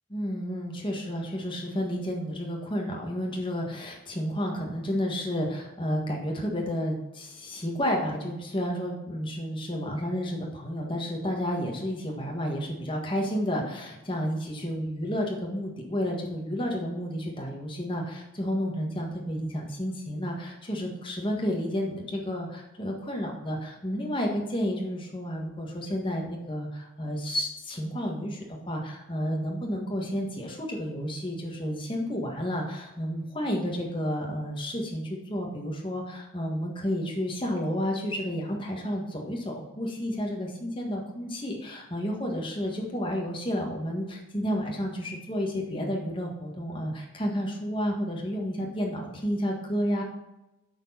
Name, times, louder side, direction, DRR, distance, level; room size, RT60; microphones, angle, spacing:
voice 1, 0.1-50.0, equal, 25° left, 0 dB, 1.5 m, -31 dB
8.4 x 4.6 x 5.7 m, 0.99 s
head